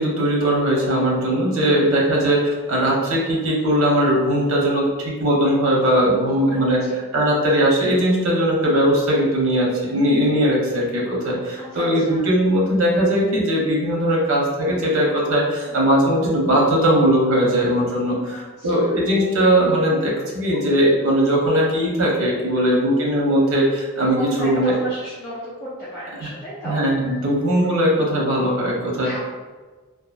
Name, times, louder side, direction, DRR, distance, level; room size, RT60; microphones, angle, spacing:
voice 1, 0.0-24.7 26.6-29.1, equal, 80° right, -3 dB, 0.8 m, -19 dB
voice 2, 5.8-7.1 8.7-9.0 11.6-12.3 15.6-15.9 18.3-19.0 22.4-22.8 24.1-26.8 29.0-29.2, equal, 15° left, -10 dB, 0.4 m, -35 dB
2.8 x 2.4 x 2.4 m, 1.4 s
head